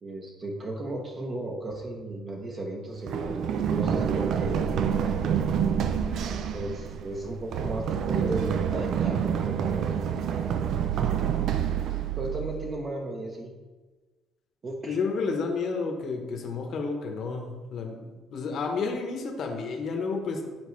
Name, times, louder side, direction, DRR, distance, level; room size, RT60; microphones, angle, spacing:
voice 1, 0.0-4.6 6.5-9.9 12.2-13.5 14.6-15.0, right 2 dB, 30° right, 0 dB, 0.9 m, -35 dB
Run, 3.1-12.8, right 8 dB, 60° right, 0.4 m, -27 dB
voice 2, 14.9-20.5, left 4 dB, 55° left, 3 dB, 1.1 m, -31 dB
10.5 x 4.6 x 3.2 m, 1.3 s
cardioid pair, 140°, 0 cm